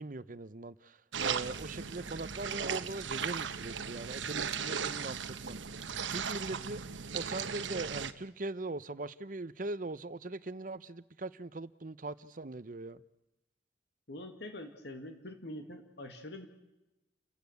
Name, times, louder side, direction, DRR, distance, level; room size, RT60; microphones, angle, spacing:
voice 1, 0.0-5.6 6.1-6.8 7.1-13.0, right 2 dB, 45° right, 0.8 m, -41 dB
sound 1, 1.1-8.1, right 6 dB, 85° right, 1.1 m, -37 dB
voice 2, 14.1-16.5, left 1 dB, 60° left, 2.3 m, -44 dB
30.0 x 15.5 x 8.1 m
head